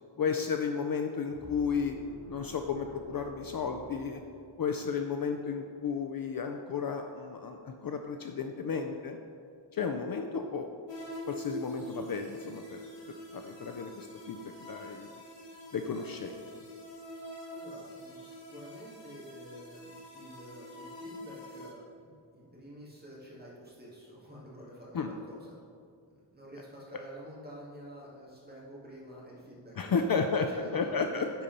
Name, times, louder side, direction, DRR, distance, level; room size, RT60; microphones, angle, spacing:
voice 1, 0.2-2.0 2.3-4.2 4.6-9.2 9.7-10.7 11.3-12.8 13.3-15.1 15.7-16.3 24.9-25.1 29.8-30.5 30.7-31.3, left 5 dB, 50° left, 5 dB, 0.5 m, -33 dB
sound 1, 1.3-4.8, right 5 dB, 55° right, 1.4 m, -51 dB
sound 2, 10.9-21.7, equal, 65° left, 1.7 m, -45 dB
voice 2, 17.5-25.5 26.1-31.3, equal, 20° right, -6 dB, 2.1 m, -49 dB
10.0 x 4.3 x 5.3 m, 2.3 s
wide cardioid pair, 165°, 46 cm